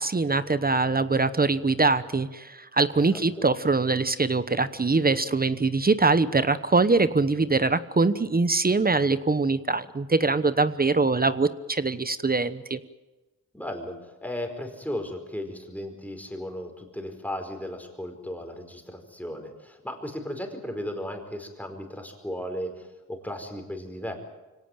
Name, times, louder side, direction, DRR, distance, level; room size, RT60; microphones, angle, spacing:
voice 1, 0.0-12.8, right 3 dB, 25° right, 14 dB, 0.9 m, -23 dB
voice 2, 3.1-3.4 13.5-24.2, left 1 dB, 5° left, 5 dB, 4.9 m, -36 dB
24.5 x 17.5 x 9.1 m, 1.2 s
cardioid pair, 85°, 34 cm